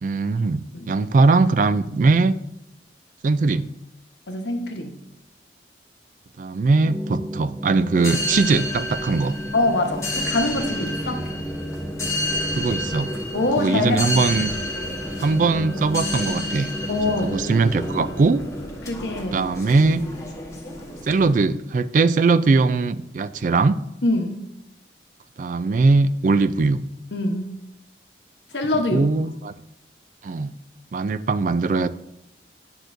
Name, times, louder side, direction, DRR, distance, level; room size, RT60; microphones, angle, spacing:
voice 1, 0.0-2.4 3.2-3.7 6.4-9.4 12.5-13.1 13.6-14.5 15.2-16.7 17.3-18.4 19.3-20.0 21.0-23.8 25.4-26.9 28.7-29.5 30.2-30.5 30.9-31.9, right 3 dB, 45° right, 14 dB, 0.3 m, -20 dB
voice 2, 4.3-4.9 9.5-11.3 13.3-14.1 16.9-17.4 18.9-19.4 24.0-24.4 27.1-27.5 28.5-29.1, left 2 dB, 85° left, 5 dB, 1.0 m, -24 dB
sound 1, 6.8-18.1, equal, ahead, 0.6 m, -33 dB
sound 2, 8.0-21.5, left 1 dB, 15° left, 1.1 m, -31 dB
10.0 x 6.0 x 2.6 m, 0.83 s
head